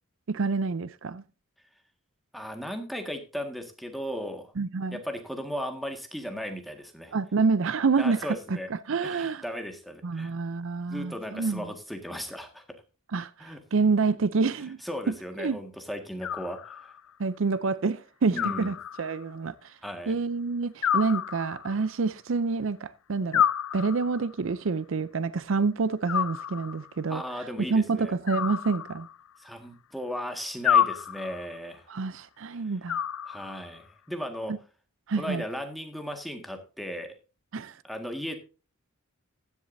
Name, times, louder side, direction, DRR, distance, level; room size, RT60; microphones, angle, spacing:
voice 1, 0.3-1.2 4.6-5.0 7.1-9.4 10.0-11.7 13.1-14.8 15.4-15.6 17.2-19.8 20.1-23.5 23.7-27.2 27.6-29.1 31.9-33.0 35.1-35.4 37.5-37.8, right 4 dB, 60° right, 0.5 m, -28 dB
voice 2, 2.3-4.5 4.9-7.1 8.0-8.7 9.0-10.3 10.9-12.6 13.4-13.6 14.8-16.9 18.3-18.7 19.8-20.1 27.1-28.1 29.4-31.8 33.3-34.5 35.2-37.2 37.8-38.4, equal, ahead, 1.7 m, -36 dB
Animal, 16.2-17.1 18.4-19.4 20.8-21.9 23.3-24.3 26.1-27.0 28.3-29.4 30.6-31.6 32.9-33.8, left 9 dB, 70° left, 0.4 m, -29 dB
15.5 x 10.5 x 2.7 m
head